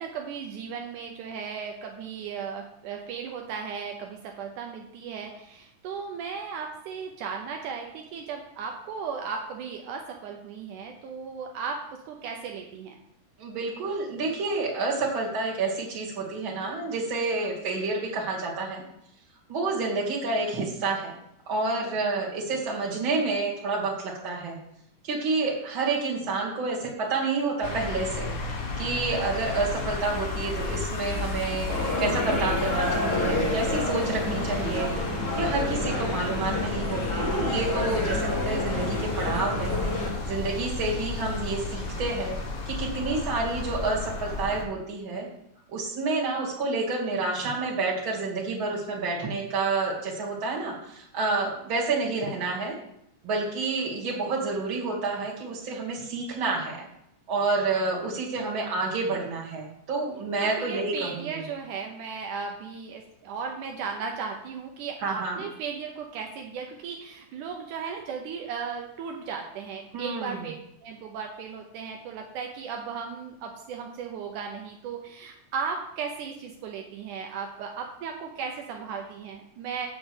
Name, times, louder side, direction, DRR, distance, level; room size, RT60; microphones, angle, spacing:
voice 1, 0.0-13.0 60.4-70.5 70.8-79.9, right 6 dB, 80° right, 2 dB, 2.3 m, -36 dB
voice 2, 13.4-18.8 19.5-21.1 21.5-24.6 25.0-28.3 28.8-31.7 32.0-34.9 35.3-39.7 40.2-42.4 42.7-45.3 45.7-52.8 53.2-56.8 57.3-61.4 65.0-65.4 69.9-70.5, right 3 dB, 40° right, -3 dB, 3.0 m, -29 dB
sound 1, 27.6-44.6, left 3 dB, 85° left, 0.7 m, -33 dB
sound 2, 31.7-40.1, left 2 dB, 30° left, 2.6 m, -29 dB
7.6 x 6.2 x 8.0 m, 0.78 s
omnidirectional pair, 3.6 m